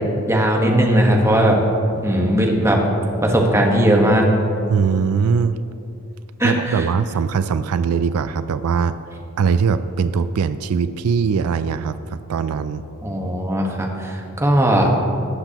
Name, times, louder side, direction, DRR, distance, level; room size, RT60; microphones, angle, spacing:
voice 1, 0.3-1.6 2.0-2.8 3.2-4.2 6.4-6.9 13.0-14.9, right 1 dB, 15° right, -1 dB, 1.3 m, -18 dB
voice 2, 4.7-5.6 6.4-8.9 9.4-12.8, right 6 dB, 85° right, 12 dB, 0.4 m, -21 dB
19.0 x 7.7 x 3.0 m, 2.7 s
head